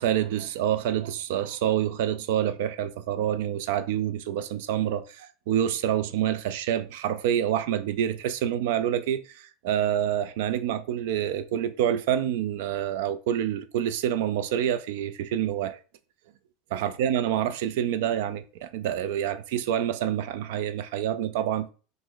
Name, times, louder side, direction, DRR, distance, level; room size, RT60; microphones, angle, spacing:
voice 1, 0.0-15.8 16.7-21.7, right 10 dB, 75° right, 0.4 m, -27 dB
2.9 x 2.5 x 3.9 m
supercardioid pair, 115°, 0 cm